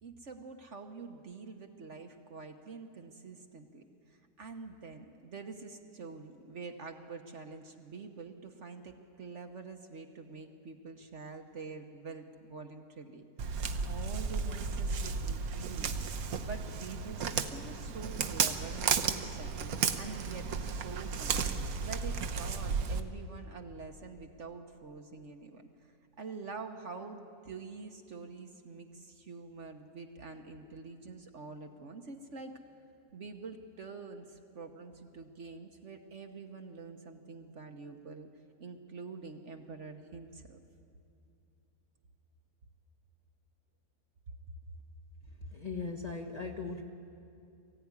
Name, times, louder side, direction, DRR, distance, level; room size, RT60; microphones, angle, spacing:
voice 1, 0.0-13.2 13.8-25.6 26.2-32.5 33.1-38.3 38.6-40.6 44.3-44.4, right 4 dB, 50° right, 5 dB, 1.3 m, -46 dB
Walk footsteps, 13.4-23.0, right 5 dB, 65° right, 1.3 m, -34 dB
voice 2, 45.3-46.8, left 4 dB, 25° left, 2 dB, 1.3 m, -39 dB
22.0 x 15.5 x 9.7 m, 2.5 s
omnidirectional pair, 1.7 m